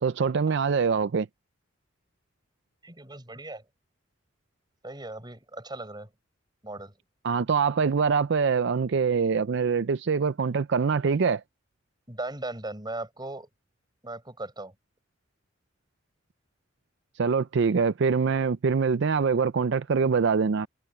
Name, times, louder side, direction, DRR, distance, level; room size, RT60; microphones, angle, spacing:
voice 1, 0.0-1.3 7.2-11.4 17.2-20.7, right 5 dB, 65° right, 0.5 m, -24 dB
voice 2, 2.8-3.6 4.8-6.1 6.6-7.0 12.1-13.5 14.0-14.7, right 2 dB, 25° right, 7.1 m, -38 dB
head